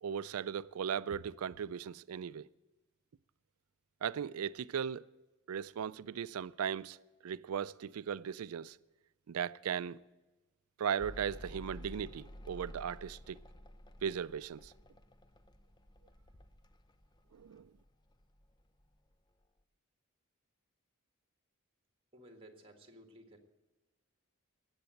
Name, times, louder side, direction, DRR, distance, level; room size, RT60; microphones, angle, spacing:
voice 1, 0.0-2.5 4.0-5.0 5.5-7.0 7.2-8.8 9.3-10.0 10.8-13.4 14.0-14.7 17.3-17.6, right 8 dB, 85° right, 0.4 m, -37 dB
Mechanical fan, 11.0-17.9 18.1-18.9, equal, 20° left, 0.6 m, -52 dB
voice 2, 22.1-23.4, right 1 dB, 25° right, 1.7 m, -56 dB
19.0 x 8.1 x 7.7 m
head